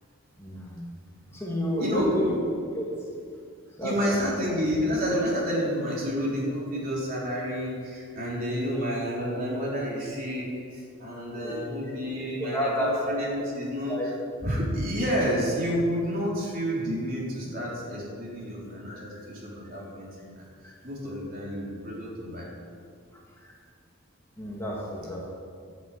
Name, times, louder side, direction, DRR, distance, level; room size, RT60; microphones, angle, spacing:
voice 1, 0.4-0.8 1.3-2.3 2.7-2.9 3.8-4.3 11.2-11.6 12.4-13.0 13.9-14.1 18.8-19.2 20.6-20.7 23.4-23.5 24.4-25.3, equal, 10° left, -5 dB, 2.1 m, -31 dB
voice 2, 1.8-2.3 3.8-14.0 14.4-20.4 20.8-22.5, equal, 40° right, -5 dB, 3.9 m, -29 dB
11.0 x 9.4 x 8.5 m, 2.3 s
head